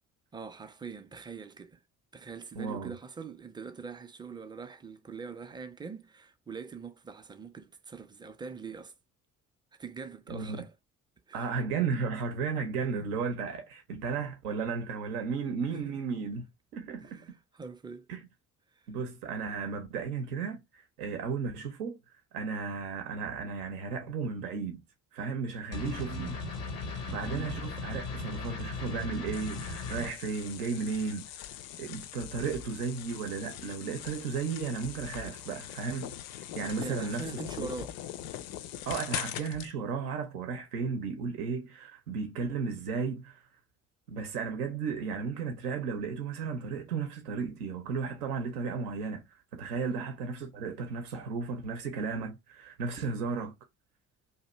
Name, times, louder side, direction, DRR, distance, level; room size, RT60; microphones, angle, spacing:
voice 1, 0.3-1.8 2.1-8.9 9.8-10.7 11.3-11.5 12.8-12.9 15.7-15.9 17.0-18.1 26.1-26.4 27.2-27.5 36.6-37.9 49.8-50.1, right 5 dB, 10° right, 0.3 m, -43 dB
voice 2, 2.6-2.9 10.3-10.6 11.3-16.4 16.7-17.2 18.1-18.2 18.9-22.0 22.3-24.8 25.1-26.4 27.1-31.5 31.8-37.3 37.6-37.7 38.9-43.4 44.1-49.2 49.5-53.5, right 5 dB, 85° right, 0.6 m, -34 dB
sound 1, 25.7-30.1, left 3 dB, 85° left, 0.7 m, -37 dB
sound 2, 29.3-39.7, left 11 dB, 55° left, 0.5 m, -42 dB
2.6 x 2.4 x 4.1 m
hypercardioid pair, 50°, 45 cm